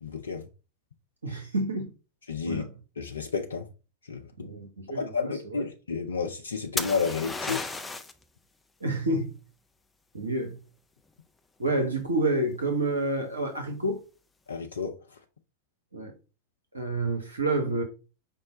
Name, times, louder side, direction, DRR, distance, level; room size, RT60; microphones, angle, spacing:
voice 1, 0.0-0.4 2.3-2.6 3.0-3.6 4.1-4.2 4.9-7.6 14.5-14.9, left 5 dB, 70° left, 0.5 m, -31 dB
voice 2, 1.2-1.9 2.4-2.7 4.4-5.7 8.8-9.3 10.1-10.6 11.6-14.0 15.9-16.1 16.7-17.8, right 2 dB, 75° right, 0.8 m, -29 dB
sound 1, 6.8-8.2 11.9-12.3, left 3 dB, 10° left, 0.4 m, -33 dB
5.3 x 2.1 x 4.2 m
figure-of-eight pair, 90°, 0 cm